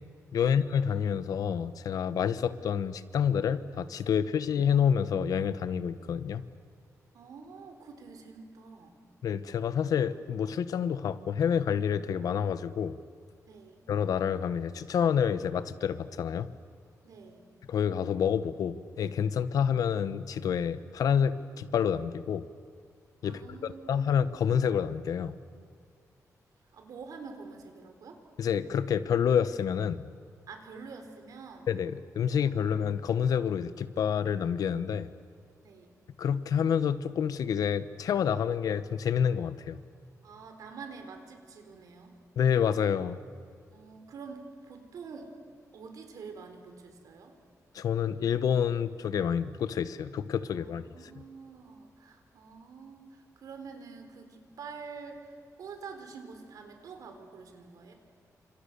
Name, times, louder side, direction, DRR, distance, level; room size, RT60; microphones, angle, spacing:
voice 1, 0.3-6.4 9.2-13.0 13.9-16.5 17.7-22.5 23.2-25.3 28.4-30.0 31.7-35.1 36.2-39.8 42.4-43.2 47.7-50.8, left 8 dB, 80° left, 14 dB, 1.1 m, -28 dB
voice 2, 7.1-9.0 13.5-13.8 17.0-17.5 23.2-24.2 26.7-28.2 30.5-31.7 32.6-32.7 35.6-35.9 40.2-42.2 43.7-45.3 45.7-47.4 50.6-57.9, right 5 dB, 75° right, 6 dB, 4.2 m, -47 dB
29.5 x 27.0 x 6.9 m, 2.2 s
wide cardioid pair, 175°, 6 cm